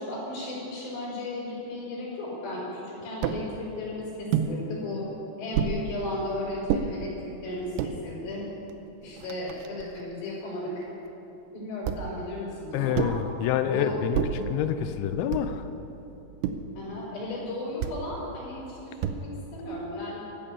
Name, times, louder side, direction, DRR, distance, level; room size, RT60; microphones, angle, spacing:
voice 1, 0.0-5.1 5.4-8.5 9.0-10.9 11.5-13.2 13.6-14.0 14.3-14.6 16.7-20.2, left 1 dB, 65° left, -5 dB, 6.9 m, -35 dB
sound 1, 3.2-3.5 4.3-4.5 5.5-5.8 6.7-6.9 7.6-8.0 8.7-8.8 9.0-10.0 11.8-12.2 12.9-13.3 14.1-14.5 15.3-15.7 16.4-16.8 17.8-18.1 19.0-19.5, right 9 dB, 80° right, 2.5 m, -29 dB
voice 2, 12.7-14.2 14.5-15.6, left 9 dB, 85° left, 9 dB, 2.9 m, -27 dB
15.5 x 11.5 x 7.1 m, 3.0 s
omnidirectional pair, 5.4 m